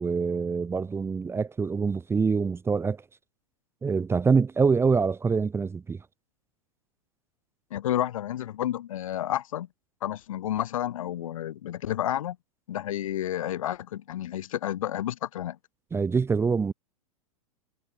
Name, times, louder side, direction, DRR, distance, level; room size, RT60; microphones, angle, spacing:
voice 1, 0.0-3.0 3.8-6.0 15.9-16.7, right 5 dB, 15° right, 1.4 m, -25 dB
voice 2, 7.7-9.7 10.0-12.4 12.7-15.6, left 12 dB, 65° left, 4.2 m, -30 dB
figure-of-eight pair, 100°, 18 cm